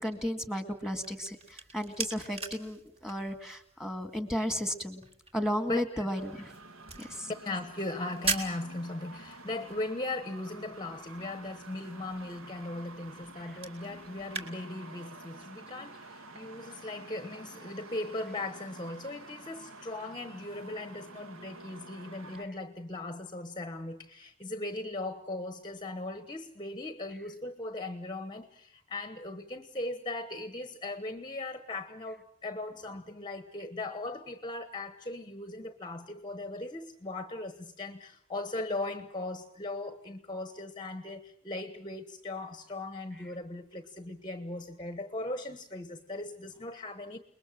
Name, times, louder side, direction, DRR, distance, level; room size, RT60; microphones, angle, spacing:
voice 1, 0.0-5.0 5.3-6.5 7.0-7.3 13.4-13.6, equal, 5° right, 2.0 m, -34 dB
sound 1, 0.7-14.5, right 3 dB, 25° right, 2.7 m, -42 dB
voice 2, 5.7-6.1 7.3-47.2, left 2 dB, 20° left, 1.1 m, -38 dB
sound 2, 6.1-22.4, right 2 dB, 60° right, 1.9 m, -50 dB
29.5 x 21.0 x 7.5 m
head